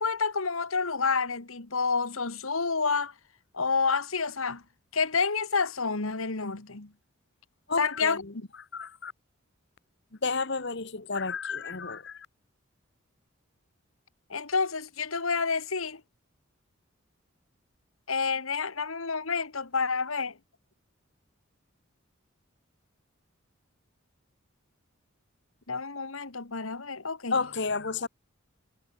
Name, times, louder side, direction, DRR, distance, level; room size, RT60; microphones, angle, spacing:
voice 1, 0.0-3.1 3.5-4.6 4.9-6.9 7.8-8.5 14.3-16.0 18.1-20.4 25.7-27.4, left 4 dB, 80° left, 1.9 m, -29 dB
voice 2, 7.7-8.3 8.7-9.1 10.2-12.3 27.3-28.1, left 4 dB, 55° left, 1.3 m, -31 dB
head